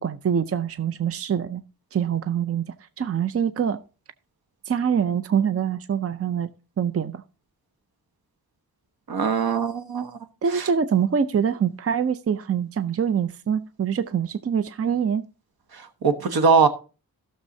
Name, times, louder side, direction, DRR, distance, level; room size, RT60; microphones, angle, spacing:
voice 1, 0.0-1.6 1.9-3.8 4.7-6.5 6.8-7.2 10.4-15.2, right 7 dB, 40° right, 0.5 m, -24 dB
voice 2, 9.1-10.1 10.5-10.7 15.7-16.7, right 5 dB, 85° right, 1.2 m, -21 dB
16.0 x 6.6 x 2.7 m
wide cardioid pair, 135°, 36 cm